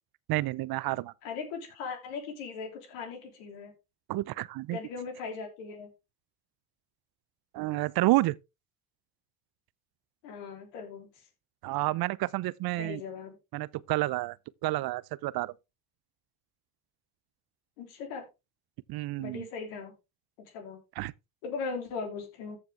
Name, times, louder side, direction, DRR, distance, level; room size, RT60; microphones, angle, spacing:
voice 1, 0.3-1.1 4.1-4.8 7.5-8.4 11.6-13.0 13.5-14.4 14.6-15.5 18.9-19.5 21.0-21.1, right 18 dB, 55° right, 0.6 m, -29 dB
voice 2, 1.2-3.7 4.7-5.9 10.2-11.1 12.8-13.4 17.8-18.2 19.2-19.9 20.4-20.8 21.4-22.6, left 5 dB, 75° left, 3.3 m, -39 dB
14.0 x 5.9 x 3.3 m
hypercardioid pair, 55°, 45 cm